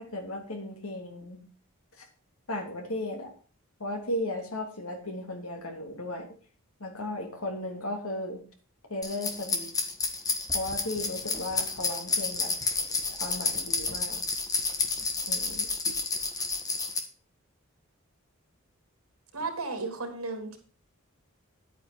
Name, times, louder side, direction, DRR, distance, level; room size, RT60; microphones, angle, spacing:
voice 1, 0.1-1.4 2.5-3.3 3.8-6.3 6.8-8.4 8.9-9.7 10.5-12.5 13.2-14.2 15.3-15.7, left 1 dB, 80° left, 3 dB, 3.2 m, -35 dB
sound 1, 9.0-17.0, left 3 dB, 15° left, 1.5 m, -30 dB
voice 2, 19.3-20.6, right 3 dB, 80° right, 5 dB, 3.5 m, -34 dB
10.5 x 9.0 x 4.6 m, 0.41 s
head